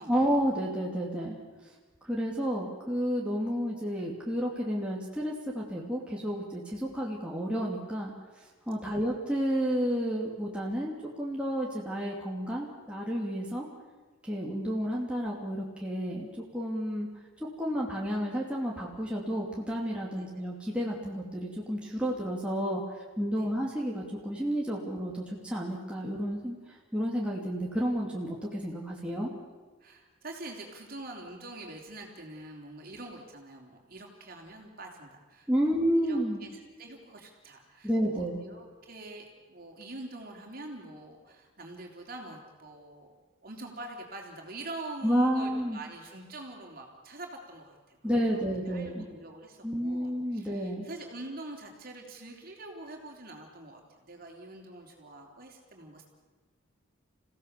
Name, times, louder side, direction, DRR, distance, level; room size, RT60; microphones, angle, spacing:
voice 1, 0.1-1.4 2.0-8.1 8.7-13.7 14.2-16.3 16.5-17.1 17.6-26.6 26.9-29.3 35.5-36.4 37.8-38.4 45.0-45.8 48.0-49.0 49.6-50.8, equal, 5° right, -3 dB, 2.7 m, -31 dB
voice 2, 29.8-35.7 36.0-43.1 43.4-56.1, right 2 dB, 45° right, 1 dB, 3.6 m, -45 dB
28.5 x 16.5 x 6.9 m, 1.3 s
head